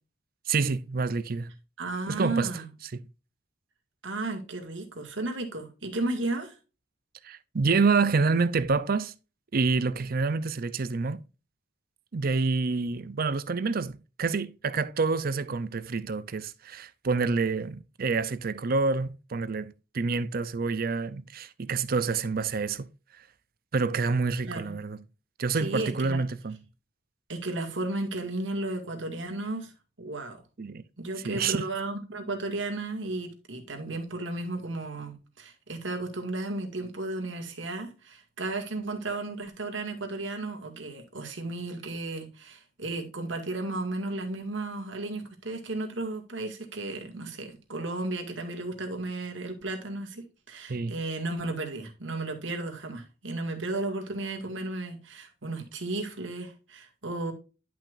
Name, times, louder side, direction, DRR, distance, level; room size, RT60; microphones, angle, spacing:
voice 1, 0.5-1.5 2.1-2.5 2.9-3.0 7.2-9.1 9.5-11.2 12.1-22.9 23.7-25.0 25.4-26.6 30.6-30.8 31.2-31.6 50.7-50.9, right 4 dB, 50° right, 0.6 m, -27 dB
voice 2, 1.8-2.7 4.0-6.5 24.4-24.7 25.5-26.2 27.3-29.7 30.0-30.4 31.0-57.3, right 2 dB, 80° right, 2.1 m, -34 dB
10.5 x 6.0 x 2.5 m
head